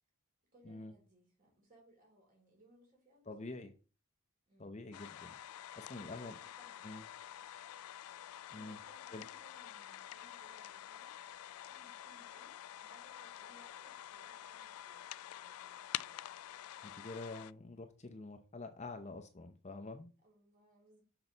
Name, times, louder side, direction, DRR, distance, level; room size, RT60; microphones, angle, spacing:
voice 1, 0.5-3.6 4.5-4.8 6.0-6.9 8.5-11.1 11.7-12.5 12.8-16.4 20.2-21.0, right 1 dB, 40° right, 0 dB, 3.7 m, -66 dB
voice 2, 3.3-3.7 4.6-5.4 5.8-6.3 6.8-7.0 8.5-8.8 9.1-9.2 16.8-20.1, left 2 dB, 30° left, 6 dB, 0.6 m, -47 dB
sound 1, 4.9-17.5, left 12 dB, 85° left, 0.3 m, -48 dB
6.7 x 6.2 x 4.0 m, 0.36 s
head